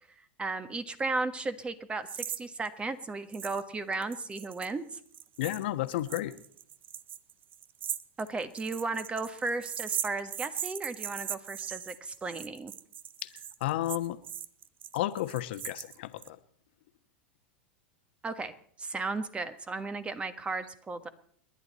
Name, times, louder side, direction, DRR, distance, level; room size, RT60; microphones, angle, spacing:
voice 1, 0.4-4.9 8.2-12.7 18.2-18.5 18.8-21.1, right 3 dB, 20° right, 11 dB, 1.5 m, -35 dB
sound 1, 2.1-2.4 2.7-2.8 3.3-3.6 3.9-16.3, right 9 dB, 35° right, 0.8 m, -39 dB
voice 2, 5.4-6.3 13.2-13.3 13.6-14.2 14.9-16.4, left 15 dB, 65° left, 11 dB, 1.2 m, -32 dB
29.5 x 11.0 x 4.2 m, 0.62 s
hypercardioid pair, 100°, 6 cm